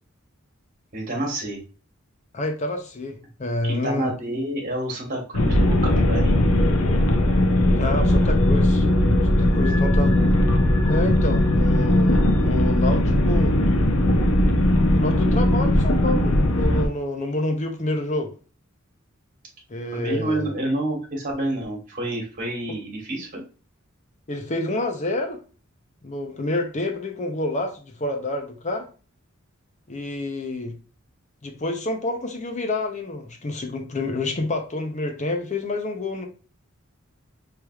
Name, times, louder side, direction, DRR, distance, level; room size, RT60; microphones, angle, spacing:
voice 1, 0.9-1.6 3.6-6.4 9.4-9.6 19.9-23.4, right 1 dB, 40° right, 1.3 m, -29 dB
voice 2, 2.3-4.1 7.8-8.9 9.3-10.1 10.9-13.6 14.9-18.3 19.7-20.5 24.3-25.4 26.0-28.9 29.9-30.7 31.4-36.3, left 2 dB, 35° left, 0.6 m, -28 dB
sound 1, 5.3-16.9, left 1 dB, 80° left, 0.7 m, -19 dB
4.6 x 3.3 x 2.3 m
head